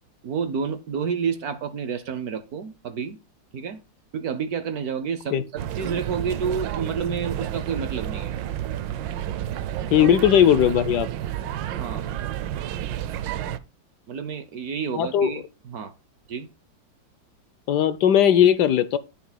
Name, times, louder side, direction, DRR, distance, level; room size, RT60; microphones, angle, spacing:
voice 1, 0.2-3.2 3.5-3.8 4.1-8.3 10.0-10.1 11.8-12.1 14.1-15.9 16.3-16.5, right 6 dB, 60° right, 1.1 m, -30 dB
sound 1, 5.6-13.6, right 11 dB, 80° right, 1.4 m, -30 dB
voice 2, 9.9-11.1 14.9-15.3 17.7-19.0, left 9 dB, 70° left, 1.2 m, -18 dB
14.5 x 7.0 x 2.3 m
omnidirectional pair, 2.1 m